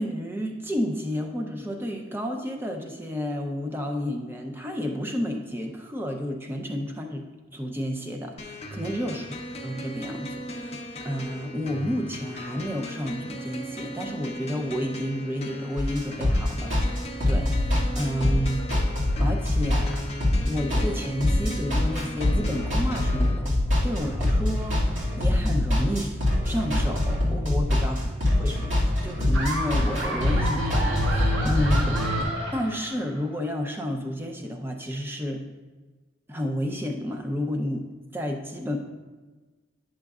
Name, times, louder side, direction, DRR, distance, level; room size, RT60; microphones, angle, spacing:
voice 1, 0.0-7.3 7.5-9.3 9.6-10.8 11.0-17.0 17.3-18.9 19.2-20.0 20.4-23.5 23.8-26.1 26.4-28.0 28.4-32.0 32.5-35.4 36.3-37.9 38.1-38.8, equal, 10° right, 2 dB, 0.6 m, -31 dB
sound 1, 8.4-23.4, left 1 dB, 30° left, 0.6 m, -38 dB
sound 2, 15.8-32.2, left 1 dB, 70° right, 2.2 m, -24 dB
Laughter, 29.3-33.4, right 2 dB, 85° right, 1.3 m, -32 dB
10.0 x 6.4 x 2.4 m, 1.3 s
head